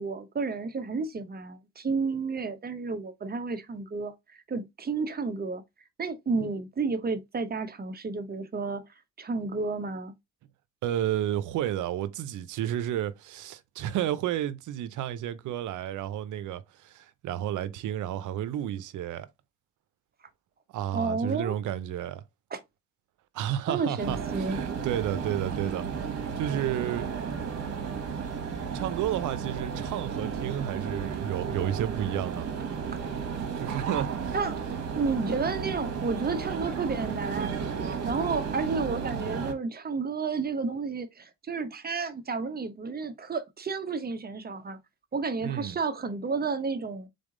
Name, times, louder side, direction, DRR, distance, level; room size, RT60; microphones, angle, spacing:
voice 1, 0.0-5.6 6.0-8.8 9.2-10.1 20.9-21.6 22.5-22.6 23.7-24.6 34.3-34.6 34.9-37.5 37.8-44.8 45.1-47.1, right 4 dB, 30° right, 0.9 m, -31 dB
voice 2, 10.8-19.3 20.7-22.2 23.3-27.0 28.7-32.5 33.6-34.3 45.4-45.8, right 11 dB, 80° right, 0.7 m, -32 dB
sound 1, 24.0-39.5, right 6 dB, 55° right, 1.5 m, -33 dB
3.8 x 3.5 x 3.7 m
cardioid pair, 90°, 30 cm